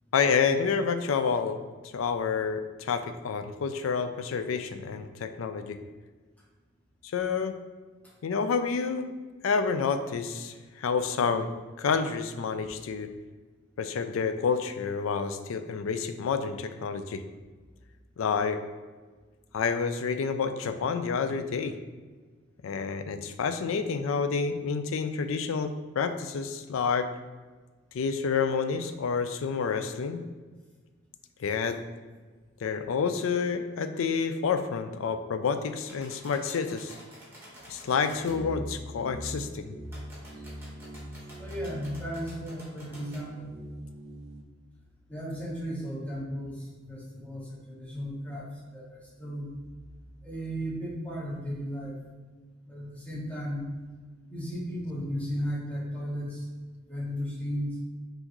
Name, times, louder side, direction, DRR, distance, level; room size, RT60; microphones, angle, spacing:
voice 1, 0.1-1.6 1.9-5.8 7.1-7.5 8.2-9.1 9.4-11.5 11.8-13.1 13.8-17.2 18.2-18.6 19.5-21.7 22.6-27.1 27.9-30.2 31.4-31.8 32.6-36.9 37.7-39.7, left 5 dB, 75° left, 9 dB, 0.4 m, -29 dB
sound 1, 35.8-38.4 39.8-43.3, equal, 10° right, 1.2 m, -50 dB
sound 2, 38.1-44.4, right 1 dB, 35° right, 0.4 m, -41 dB
voice 2, 41.4-43.5 45.1-46.6 46.9-49.5 50.2-51.9 52.7-53.7 54.3-57.7, equal, 5° left, -6 dB, 1.1 m, -35 dB
5.7 x 2.7 x 3.0 m, 1.4 s
head